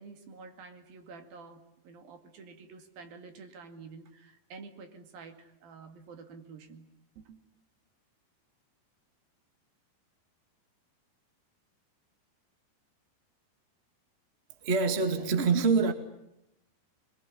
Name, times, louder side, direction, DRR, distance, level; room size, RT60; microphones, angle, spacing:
voice 1, 0.0-6.9 7.2-7.4, right 4 dB, 65° right, 7 dB, 3.9 m, -49 dB
voice 2, 14.6-15.9, right 4 dB, 25° right, 7 dB, 1.4 m, -25 dB
26.0 x 22.0 x 9.9 m, 0.83 s
omnidirectional pair, 4.7 m